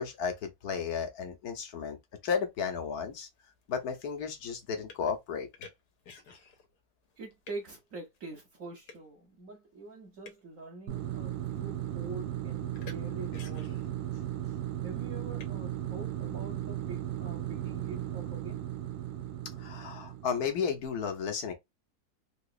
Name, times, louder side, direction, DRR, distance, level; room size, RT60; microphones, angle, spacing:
voice 1, 0.0-2.0 2.2-3.3 3.7-5.5 19.6-21.5, left 6 dB, 75° left, 1.4 m, -33 dB
sound 1, 3.1-6.7 7.0-7.7 8.1-8.2 8.9-9.1 9.9-10.5 11.2-11.6 11.9-12.2 12.7-13.0 13.3-14.1 15.4-15.5, left 4 dB, 90° left, 1.5 m, -51 dB
voice 2, 7.2-14.0 14.8-18.6, right 3 dB, 60° right, 1.2 m, -45 dB
sound 2, 10.9-20.7, right 11 dB, 90° right, 1.3 m, -36 dB
3.8 x 2.9 x 2.4 m
omnidirectional pair, 1.7 m